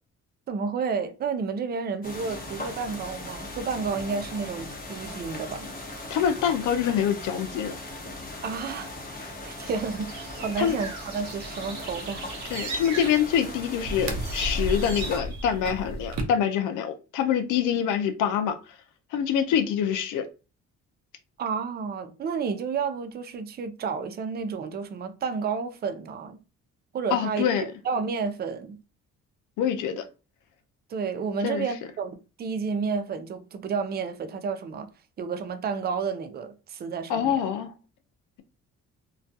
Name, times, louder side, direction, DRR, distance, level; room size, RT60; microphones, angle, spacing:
voice 1, 0.5-5.7 8.4-12.8 21.4-26.4 26.9-27.5 27.8-28.8 30.9-34.9 35.2-37.4, right 5 dB, 35° right, 0.4 m, -31 dB
sound 1, 2.0-15.2, left 2 dB, 30° left, 0.8 m, -39 dB
voice 2, 6.1-7.8 9.2-9.3 10.6-10.8 12.5-18.6 19.1-20.3 27.1-27.7 29.6-30.1 31.4-31.7 37.1-37.7, left 8 dB, 85° left, 0.5 m, -25 dB
sound 2, 9.7-16.2, right 1 dB, 65° right, 0.7 m, -35 dB
2.3 x 2.2 x 2.6 m
cardioid pair, 90°, 30 cm